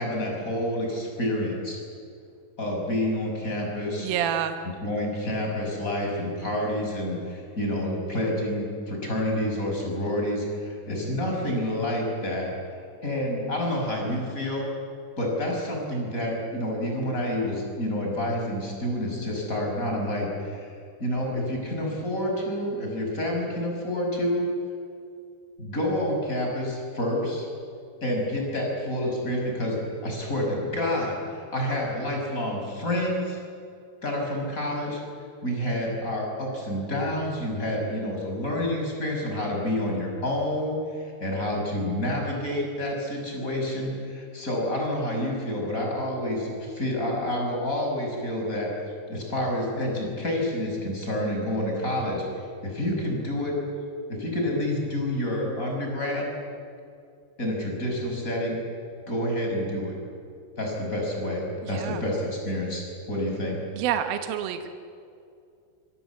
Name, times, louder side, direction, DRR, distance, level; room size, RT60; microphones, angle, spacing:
voice 1, 0.0-1.8 2.6-4.1 4.6-12.5 13.0-14.7 15.2-20.7 21.0-24.5 25.6-27.5 28.0-29.8 30.0-33.4 34.0-35.0 35.4-53.6 54.1-56.3 57.4-58.6 59.1-59.9 60.6-63.5, left 1 dB, 20° left, 0 dB, 6.3 m, -28 dB
voice 2, 4.0-4.6 61.6-62.0 63.7-64.7, right 10 dB, 70° right, 7 dB, 2.9 m, -28 dB
26.5 x 22.0 x 8.4 m, 2.4 s
omnidirectional pair, 4.6 m